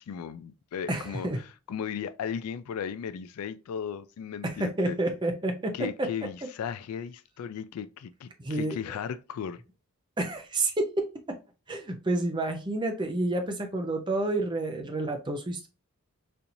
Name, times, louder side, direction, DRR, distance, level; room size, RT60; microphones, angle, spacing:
voice 1, 0.0-1.3 1.7-5.0 5.7-9.6, left 7 dB, 85° left, 0.3 m, -36 dB
voice 2, 0.9-1.4 4.4-5.7 8.4-8.8 10.2-11.0 11.7-15.7, right 2 dB, 20° right, 0.6 m, -29 dB
4.3 x 2.6 x 2.6 m
head